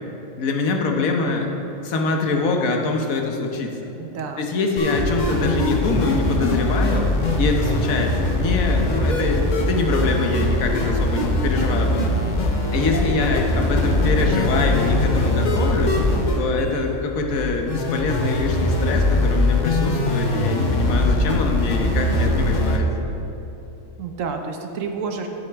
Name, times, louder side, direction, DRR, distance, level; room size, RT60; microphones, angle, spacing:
voice 1, 0.4-1.5 1.8-3.8 4.4-12.2 12.7-15.9 16.4-22.9, left 3 dB, 85° left, 2 dB, 1.3 m, -24 dB
voice 2, 4.0-4.5 24.0-25.3, right 5 dB, 75° right, 4 dB, 1.1 m, -29 dB
sound 1, 4.8-22.8, left 1 dB, 40° left, 0.8 m, -21 dB
11.5 x 6.9 x 3.5 m, 3.0 s
omnidirectional pair, 1.4 m